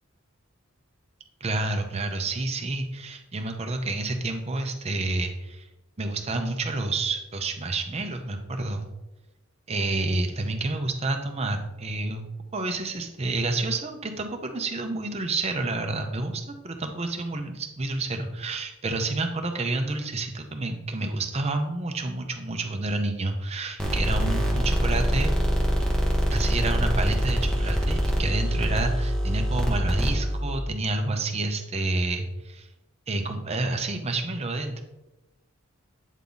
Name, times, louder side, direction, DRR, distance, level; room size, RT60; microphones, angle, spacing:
voice 1, 1.4-5.7 6.0-8.9 9.7-25.4 26.3-32.7 33.1-34.8, right 2 dB, 30° right, 5 dB, 0.6 m, -29 dB
sound 1, 23.8-30.6, equal, 5° left, 0.9 m, -24 dB
8.2 x 3.5 x 3.9 m, 0.97 s
head